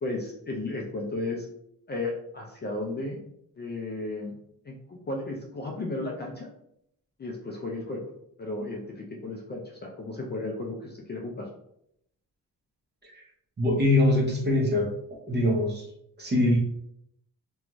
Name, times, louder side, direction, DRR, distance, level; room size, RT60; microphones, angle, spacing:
voice 1, 0.0-1.5 1.9-3.2 3.6-4.4 4.6-6.5 7.2-8.1 8.4-11.5, left 2 dB, 30° left, -1 dB, 0.4 m, -34 dB
voice 2, 13.6-14.9 15.3-15.9 16.2-16.6, left 1 dB, 30° right, -2 dB, 0.8 m, -23 dB
2.4 x 2.3 x 2.9 m, 0.75 s
cardioid pair, 115°, 35 cm